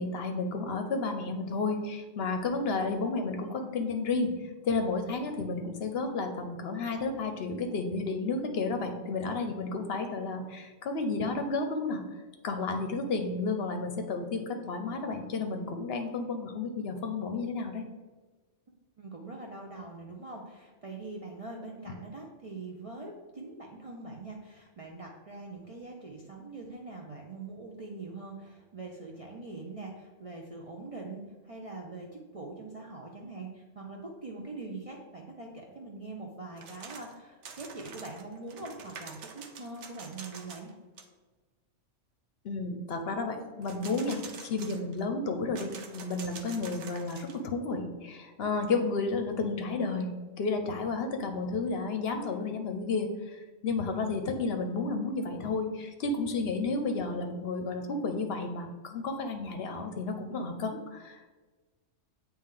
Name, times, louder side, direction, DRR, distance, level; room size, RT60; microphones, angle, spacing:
voice 1, 0.0-17.9 42.4-61.4, left 3 dB, 60° left, 5 dB, 0.8 m, -32 dB
voice 2, 19.0-40.7, right 3 dB, 40° right, -1 dB, 0.5 m, -43 dB
sound 1, 36.6-37.2 37.4-40.7 41.0-41.1 43.6-45.0 45.5-47.4, right 5 dB, 75° right, 1.0 m, -46 dB
8.7 x 2.9 x 3.7 m, 1.3 s
omnidirectional pair, 1.3 m